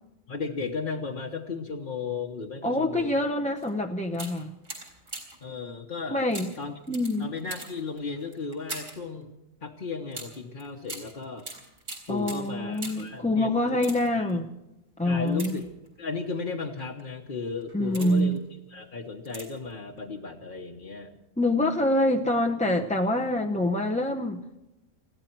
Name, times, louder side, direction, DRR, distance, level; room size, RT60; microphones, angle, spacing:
voice 1, 0.3-3.3 5.4-6.2 6.6-6.7 7.2-9.3 9.6-11.5 12.1-13.8 14.1-14.3 15.0-15.7 16.0-18.4 18.7-21.2, left 4 dB, 45° left, -1 dB, 1.2 m, -35 dB
voice 2, 2.6-4.5 6.1-6.5 6.9-7.3 12.1-14.5 15.0-15.6 17.7-18.4 21.4-24.4, left 1 dB, 10° left, 1 dB, 0.5 m, -26 dB
sound 1, 3.6-3.7 4.1-5.5 6.3-9.1 10.1-13.2 13.7-14.3 15.3-16.1 16.8-17.0 17.6-18.4 19.2-19.7 20.0-20.1, right 2 dB, 75° right, 4.3 m, -42 dB
20.5 x 15.5 x 4.5 m, 0.97 s
omnidirectional pair, 1.3 m